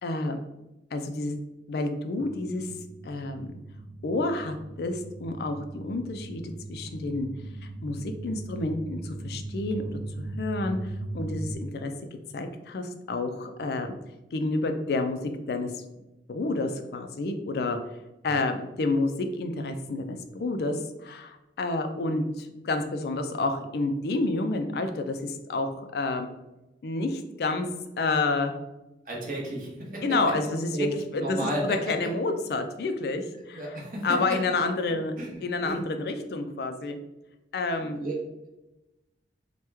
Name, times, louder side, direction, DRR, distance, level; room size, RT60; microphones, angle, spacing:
voice 1, 0.0-0.4 0.9-1.4 1.7-2.7 3.0-3.6 4.0-7.3 7.8-9.9 10.2-11.9 12.3-13.9 14.3-15.2 15.5-15.8 16.3-17.8 18.2-26.3 26.8-27.7 28.0-28.6 30.0-33.8 34.0-35.1 35.4-37.0 37.5-38.0, left 2 dB, 60° left, 6 dB, 0.3 m, -29 dB
sound 1, 2.2-11.6, right 2 dB, 10° right, 0.4 m, -39 dB
voice 2, 29.1-30.0 30.7-30.9 31.2-31.6 33.4-34.0 35.2-35.8 37.8-38.2, right 1 dB, 50° right, -2 dB, 0.9 m, -33 dB
3.0 x 2.2 x 3.3 m, 0.99 s
head